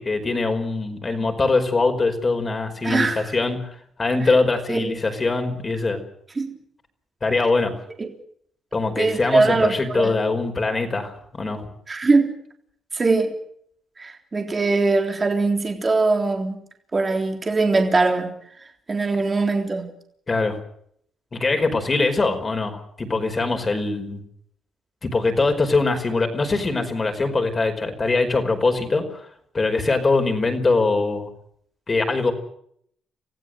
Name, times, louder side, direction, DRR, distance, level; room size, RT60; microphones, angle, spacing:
voice 1, 0.0-3.7 4.0-6.0 7.2-7.7 8.7-11.7 20.3-20.6 21.3-24.2 25.0-29.0 29.5-31.3 31.9-32.3, left 3 dB, 30° left, 5.0 m, -22 dB
voice 2, 2.8-3.3 4.2-4.3 4.7-4.9 6.4-6.6 8.0-8.1 9.0-10.1 11.9-12.3 12.9-13.3 14.0-16.6 16.9-18.3 18.9-19.9, right 3 dB, 30° right, 3.6 m, -21 dB
26.5 x 15.5 x 7.9 m
cardioid pair, 90°, 0 cm